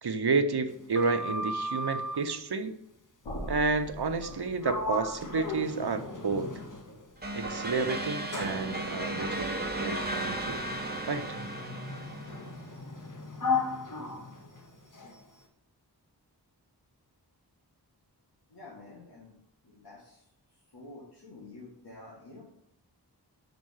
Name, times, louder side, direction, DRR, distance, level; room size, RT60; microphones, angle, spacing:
voice 1, 0.0-2.7 3.5-6.5 7.3-10.6 11.1-11.3, right 4 dB, 70° right, 8 dB, 0.8 m, -30 dB
Sliding door, 0.7-2.3 4.1-4.4 4.6-7.1 7.7-15.2, left 3 dB, 50° left, 1.2 m, -36 dB
sound 1, 3.2-9.1, equal, 90° left, 1.3 m, -46 dB
sound 2, 7.2-12.7, right 1 dB, 25° right, 1.1 m, -35 dB
voice 2, 18.5-19.3 19.6-20.2 20.7-22.4, left 2 dB, 65° left, -4 dB, 1.8 m, -49 dB
6.4 x 5.1 x 6.3 m, 0.79 s
wide cardioid pair, 50°, 41 cm